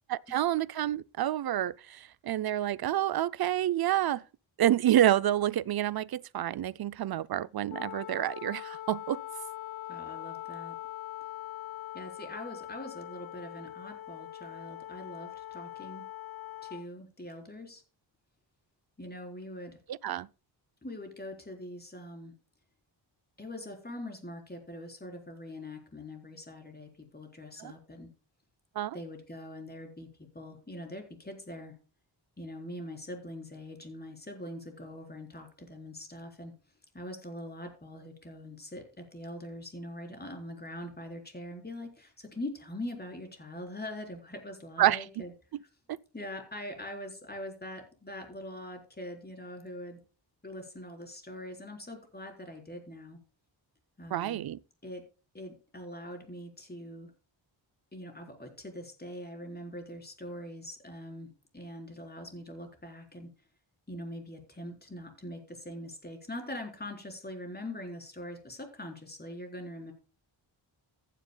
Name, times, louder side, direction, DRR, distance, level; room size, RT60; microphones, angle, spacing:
voice 1, 0.1-4.2 4.6-9.2 19.9-20.3 27.6-27.7 28.8-29.0 44.8-45.0 54.1-54.6, right 12 dB, 55° right, 0.5 m, -28 dB
Wind instrument woodwind instrument, 7.7-16.9, left 13 dB, 85° left, 0.7 m, -42 dB
voice 2, 9.9-10.7 11.9-16.0 16.6-17.8 19.0-19.8 20.8-22.3 23.4-28.1 28.9-30.1 30.3-31.8 32.4-36.5 36.9-45.3 46.1-50.0 50.4-53.2 54.0-54.4 54.8-55.0 55.3-57.1 57.9-63.3 63.9-69.9, left 1 dB, 20° left, 4.0 m, -43 dB
15.0 x 10.0 x 2.2 m
wide cardioid pair, 110°, 45 cm